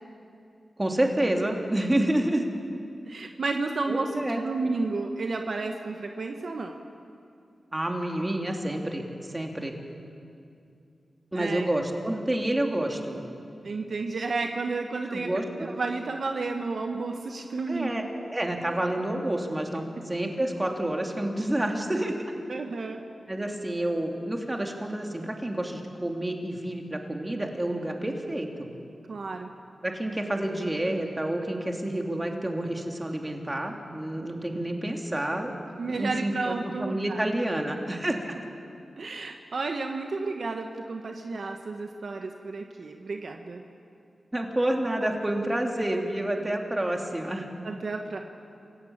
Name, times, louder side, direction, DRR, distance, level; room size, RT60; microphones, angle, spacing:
voice 1, 0.8-2.4 3.9-4.4 7.7-9.7 11.3-13.2 15.1-15.7 17.7-18.0 18.3-22.2 23.3-28.7 29.8-35.5 35.9-38.4 44.3-47.5, right 1 dB, 20° right, 2 dB, 3.1 m, -29 dB
voice 2, 3.0-6.7 11.3-11.7 13.6-17.9 22.5-23.0 29.1-29.5 35.8-37.2 39.0-43.6 47.6-48.2, right 3 dB, 65° right, 4 dB, 1.3 m, -32 dB
28.0 x 15.5 x 8.8 m, 2.5 s
cardioid pair, 70°, 0 cm